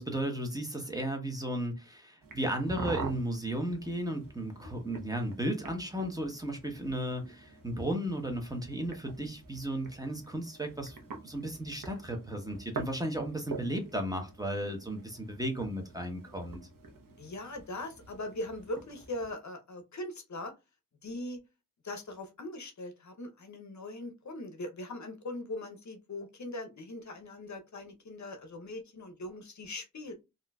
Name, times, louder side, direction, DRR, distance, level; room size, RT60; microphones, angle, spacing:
voice 1, 0.0-11.0 11.2-16.6, right 1 dB, 10° right, 0.9 m, -34 dB
sound 1, 2.2-19.3, right 3 dB, 70° right, 0.9 m, -46 dB
voice 2, 17.2-20.5 21.0-21.4 21.8-30.1, left 1 dB, 55° left, 0.7 m, -41 dB
3.6 x 2.6 x 2.2 m
wide cardioid pair, 70°, 34 cm